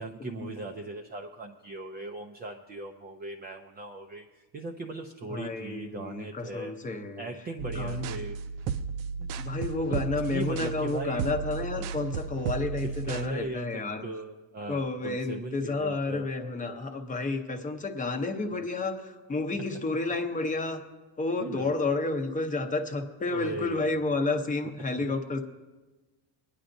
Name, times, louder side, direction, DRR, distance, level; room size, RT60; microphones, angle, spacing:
voice 1, 0.0-6.7 7.2-8.4 9.2-9.3 9.9-11.2 12.8-17.0 19.5-19.6 21.4-21.8 23.3-24.0 25.0-25.1, right 2 dB, 25° right, 2 dB, 0.3 m, -39 dB
voice 2, 5.3-7.2 7.7-8.2 9.4-14.1 14.7-20.8 21.2-25.4, left 3 dB, 20° left, 5 dB, 0.7 m, -31 dB
sound 1, 7.6-13.3, right 5 dB, 85° right, 0.6 m, -34 dB
24.0 x 9.9 x 2.6 m, 1.3 s
cardioid pair, 170°, 44 cm